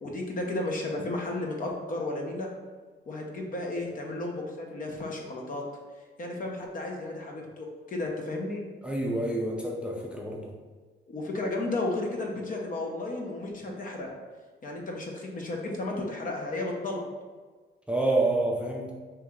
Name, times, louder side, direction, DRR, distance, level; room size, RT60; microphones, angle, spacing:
voice 1, 0.0-2.5 3.1-5.6 6.2-8.6 11.1-14.1 14.6-17.0, left 2 dB, 45° left, 0 dB, 0.7 m, -33 dB
voice 2, 8.8-10.5 17.9-18.9, right 2 dB, 5° right, -1 dB, 0.4 m, -28 dB
2.9 x 2.7 x 3.5 m, 1.4 s
cardioid pair, 90°, 20 cm